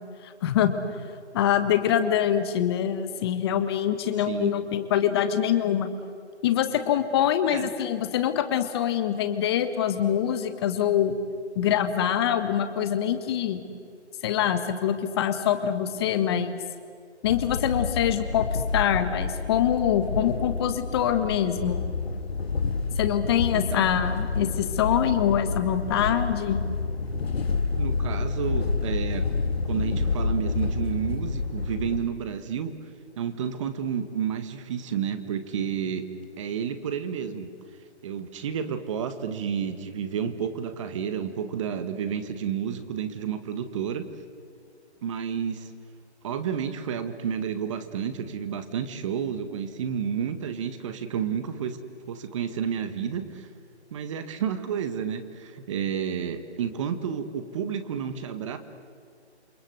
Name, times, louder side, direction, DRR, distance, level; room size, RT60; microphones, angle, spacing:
voice 1, 0.2-0.7 1.3-5.9 6.4-11.1 11.5-13.6 14.2-16.6 17.2-21.8 23.0-26.7, left 10 dB, 20° left, 9 dB, 1.5 m, -24 dB
voice 2, 4.2-4.5 7.5-7.7 23.5-23.9 27.7-29.2 29.6-32.7 33.2-36.1 36.4-37.5 38.0-44.0 45.0-45.7 46.2-51.8 52.1-53.5 53.9-58.6, right 8 dB, 25° right, 9 dB, 1.7 m, -30 dB
sound 1, 17.2-32.0, left 4 dB, 60° left, 2.8 m, -29 dB
28.5 x 24.0 x 8.1 m, 2.3 s
hypercardioid pair, 155°, 34 cm